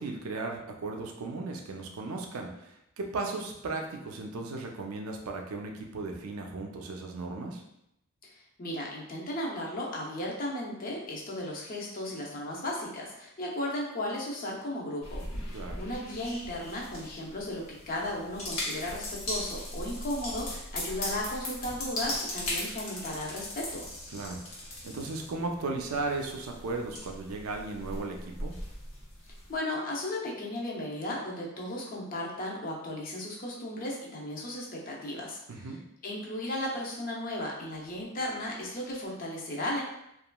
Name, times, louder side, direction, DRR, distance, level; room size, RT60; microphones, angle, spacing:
voice 1, 0.0-7.6 15.5-15.8 24.1-28.6 35.5-35.8, right 3 dB, 90° right, 2 dB, 0.5 m, -36 dB
voice 2, 8.6-15.3 15.8-23.9 29.5-35.4 36.0-39.8, left 1 dB, 40° left, -2 dB, 0.6 m, -35 dB
sound 1, 15.0-29.6, left 1 dB, 90° left, 0.8 m, -39 dB
2.9 x 2.4 x 2.2 m, 0.82 s
head